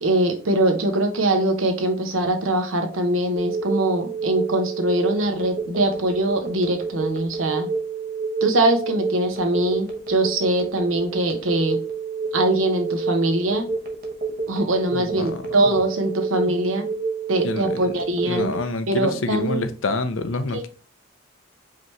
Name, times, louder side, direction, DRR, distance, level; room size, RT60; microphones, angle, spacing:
voice 1, 0.0-7.7 8.4-11.8 12.3-13.6 14.5-16.9 17.3-18.5 18.9-19.7 20.5-20.7, right 1 dB, 90° right, 0.9 m, -22 dB
Telephone, 3.3-18.6, right 4 dB, 50° right, 0.9 m, -28 dB
voice 2, 14.9-15.3 17.4-17.7 18.2-20.7, left 3 dB, 70° left, 0.6 m, -27 dB
5.0 x 2.9 x 3.2 m
head